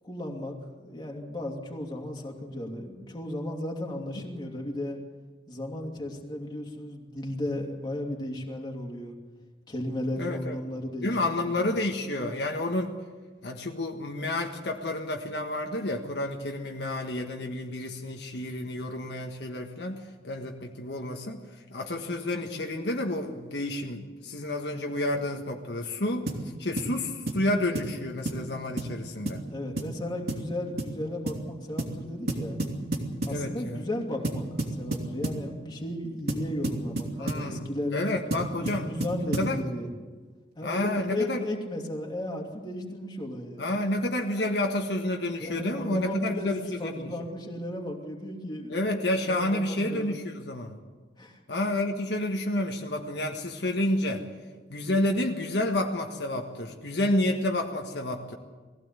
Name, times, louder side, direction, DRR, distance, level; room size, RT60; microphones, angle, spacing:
voice 1, 0.0-5.0 5.5-9.2 9.7-11.3 11.5-11.6 29.5-32.6 33.2-34.5 34.7-38.1 38.6-39.9 40.5-43.7 45.4-48.9 49.2-50.2 51.2-51.4, left 1 dB, 25° left, 0 dB, 2.7 m, -35 dB
voice 2, 10.2-10.6 11.0-12.9 13.4-21.4 21.7-26.3 26.6-29.4 33.3-33.8 37.2-38.9 39.4-39.6 40.6-41.4 43.6-47.1 48.7-50.8 51.5-54.2 54.7-58.3, left 1 dB, 70° left, 2 dB, 1.6 m, -30 dB
sound 1, 26.3-26.5 26.8-26.9 27.3-27.5 27.7-27.9 28.3-28.5 28.8-28.9 29.3-29.4 29.8-30.0 30.3-30.5 30.8-31.0 31.3-31.4 31.8-32.0 32.3-33.4 34.2-35.4 36.3-37.5 38.3-39.6, right 1 dB, 60° right, 2.9 m, -31 dB
20.5 x 16.0 x 8.2 m, 1.4 s
head